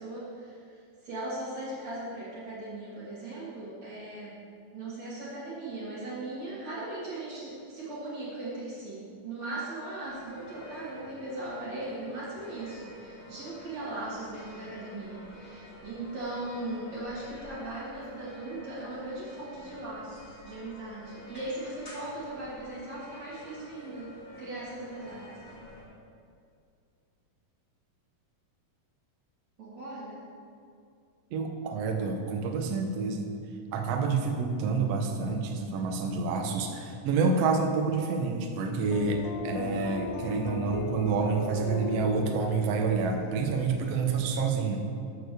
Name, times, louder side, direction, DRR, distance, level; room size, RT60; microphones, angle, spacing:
voice 1, 0.0-4.3 4.7-24.1 24.4-25.3 29.6-30.2, right 2 dB, 55° right, -9 dB, 2.6 m, -38 dB
sound 1, 10.0-25.8, left 1 dB, 25° left, 1.6 m, -49 dB
voice 2, 31.3-33.4 33.7-44.8, right 4 dB, 75° right, 3 dB, 1.5 m, -28 dB
sound 2, 38.9-44.3, left 5 dB, 85° left, 2.3 m, -37 dB
6.7 x 6.5 x 6.6 m, 2.4 s
omnidirectional pair, 4.0 m